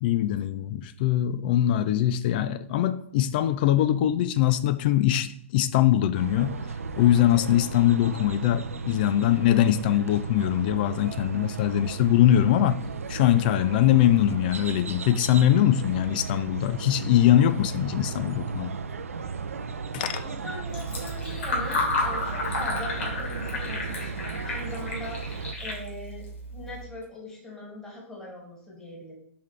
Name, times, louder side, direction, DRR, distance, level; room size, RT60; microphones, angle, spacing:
voice 1, 0.0-6.6 7.0-12.8 13.1-18.7 19.9-20.1, left 12 dB, 40° left, 13 dB, 0.4 m, -22 dB
sound 1, 6.1-25.5, right 5 dB, 70° right, 0.5 m, -35 dB
voice 2, 20.0-29.1, left 1 dB, 5° left, -4 dB, 2.3 m, -40 dB
Fill (with liquid), 20.6-26.8, left 2 dB, 60° left, 2.8 m, -32 dB
5.9 x 5.6 x 3.3 m, 0.63 s
figure-of-eight pair, 115°, 8 cm